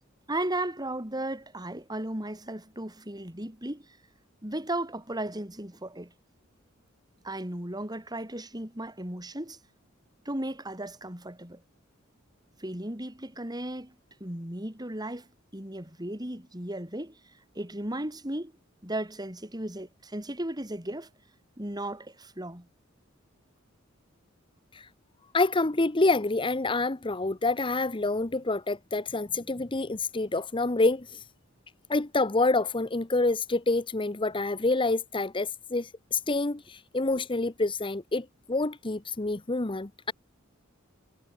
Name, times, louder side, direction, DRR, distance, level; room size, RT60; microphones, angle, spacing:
voice 1, 0.3-4.0 4.4-6.1 7.2-9.6 10.2-11.6 12.6-13.9 14.2-15.3 15.5-17.2 17.5-18.5 18.8-21.1 21.6-22.7, right 1 dB, 20° right, 4.4 m, -35 dB
voice 2, 25.3-31.2 31.9-40.1, left 2 dB, 25° left, 0.9 m, -27 dB
head